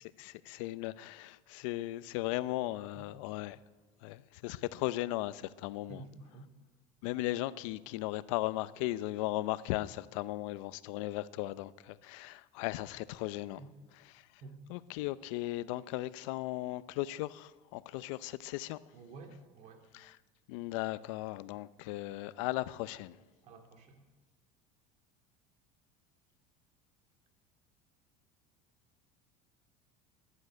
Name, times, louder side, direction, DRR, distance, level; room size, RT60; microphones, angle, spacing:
voice 1, 0.0-3.6 4.0-6.0 7.0-13.6 13.9-14.4 14.7-18.8 19.9-20.2 20.5-23.2, left 17 dB, 80° left, 0.6 m, -37 dB
voice 2, 5.9-6.5 13.6-13.7 14.4-14.6 18.9-19.8 23.4-23.9, right 3 dB, 45° right, 2.6 m, -50 dB
11.5 x 11.5 x 9.6 m
cardioid pair, 150°, 16 cm